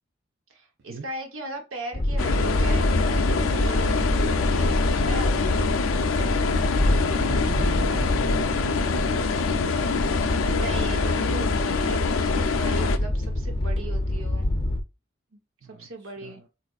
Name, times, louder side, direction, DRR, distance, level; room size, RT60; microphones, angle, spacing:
voice 1, 0.5-5.6 10.4-14.5 15.3-15.4 15.7-16.4, right 2 dB, 85° right, 0.9 m, -38 dB
sound 1, 1.9-14.8, left 1 dB, 25° left, 0.4 m, -26 dB
sound 2, 2.2-13.0, left 4 dB, 85° left, 0.4 m, -25 dB
voice 2, 6.5-9.9 15.6-16.5, right 4 dB, 60° right, 0.5 m, -40 dB
4.1 x 2.5 x 2.3 m
head